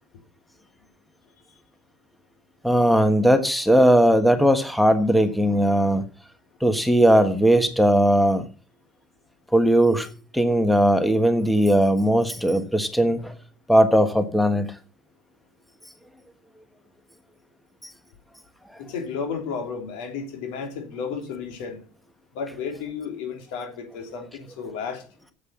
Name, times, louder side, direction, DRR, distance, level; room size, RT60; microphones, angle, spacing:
voice 1, 2.6-6.0 6.6-8.5 9.5-10.1 10.3-13.3 13.7-14.7, equal, ahead, 1.4 m, -18 dB
voice 2, 18.8-21.9 22.3-25.0, left 6 dB, 90° left, 3.4 m, -33 dB
8.0 x 7.8 x 8.5 m
supercardioid pair, 100°, 5 cm